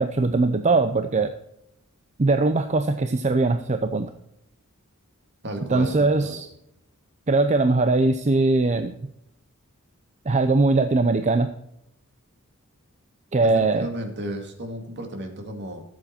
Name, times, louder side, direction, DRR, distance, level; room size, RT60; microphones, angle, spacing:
voice 1, 0.0-1.3 2.2-4.1 5.7-6.5 7.3-8.9 10.3-11.5 13.3-13.9, right 3 dB, 35° right, 8 dB, 0.6 m, -21 dB
voice 2, 5.4-6.4 13.4-15.8, right 1 dB, 55° right, 5 dB, 2.1 m, -33 dB
13.0 x 7.6 x 4.3 m, 0.78 s
head